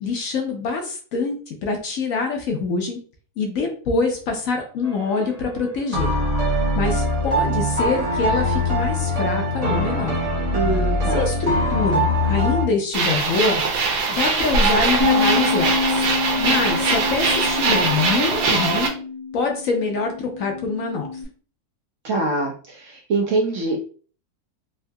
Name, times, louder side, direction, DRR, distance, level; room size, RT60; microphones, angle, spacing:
voice 1, 0.0-3.0 3.4-6.1 6.8-10.2 11.1-13.6 14.1-16.1 16.4-18.9 19.3-21.1, left 4 dB, 65° left, 3 dB, 1.0 m, -25 dB
sound 1, 4.8-5.3 5.9-12.7, left 1 dB, 35° right, 0.6 m, -22 dB
voice 2, 10.5-11.3 16.5-16.8 22.0-23.8, right 3 dB, 65° right, 2 dB, 0.8 m, -24 dB
sound 2, 12.9-18.9, right 4 dB, 85° right, 1.3 m, -21 dB
Bass guitar, 15.0-21.2, left 5 dB, 40° left, 0.4 m, -27 dB
3.5 x 2.7 x 2.2 m, 0.40 s
omnidirectional pair, 1.7 m